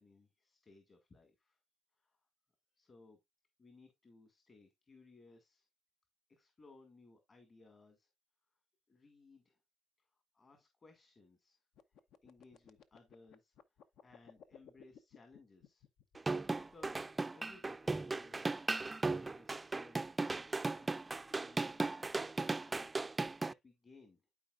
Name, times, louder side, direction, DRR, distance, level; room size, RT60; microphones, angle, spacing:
voice 1, 0.0-1.6 1.9-2.2 2.7-3.2 3.6-5.7 6.3-8.1 8.9-9.6 10.0-10.1 10.3-11.7 12.2-15.9 16.2-18.7 19.1-20.1 20.8-22.9 23.4-24.3, left 3 dB, 40° left, 2.0 m, -62 dB
sound 1, 11.7-17.0, left 8 dB, 80° left, 0.7 m, -60 dB
sound 2, 16.2-23.5, right 3 dB, 20° right, 0.3 m, -36 dB
12.0 x 4.7 x 2.4 m
cardioid pair, 90°, 0 cm